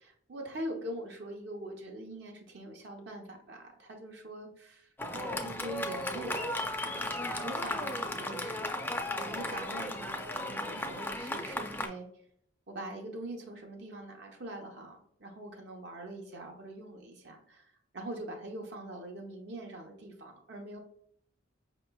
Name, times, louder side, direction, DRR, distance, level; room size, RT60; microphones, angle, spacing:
voice 1, 0.0-6.4 7.4-12.1 12.7-20.8, right 1 dB, 60° right, 1 dB, 0.7 m, -43 dB
Fireworks, 5.0-11.9, left 1 dB, 10° left, 0.4 m, -35 dB
5.3 x 2.9 x 2.2 m, 0.68 s
head